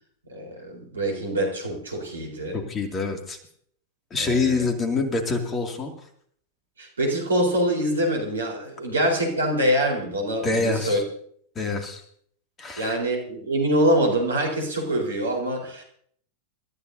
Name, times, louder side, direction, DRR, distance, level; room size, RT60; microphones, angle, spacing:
voice 1, 0.3-2.6 4.2-4.7 6.8-11.0 12.8-15.8, right 1 dB, 75° right, 1 dB, 4.1 m, -25 dB
voice 2, 2.5-3.4 4.1-5.9 10.4-11.0 11.5-12.0 12.6-13.0, left 3 dB, 20° left, 4 dB, 2.4 m, -26 dB
28.0 x 13.5 x 2.7 m, 0.64 s
figure-of-eight pair, 90°, 0 cm